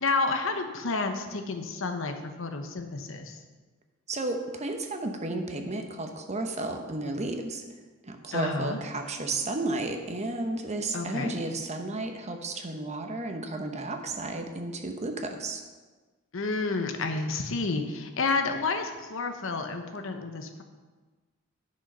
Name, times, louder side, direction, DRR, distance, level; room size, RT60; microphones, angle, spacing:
voice 1, 0.0-3.4 8.3-8.8 10.9-11.3 16.3-20.6, left 3 dB, 65° left, 6 dB, 1.0 m, -30 dB
voice 2, 4.1-7.6 8.0-15.6, right 2 dB, 35° right, 5 dB, 0.9 m, -33 dB
10.5 x 6.3 x 5.6 m, 1.3 s
head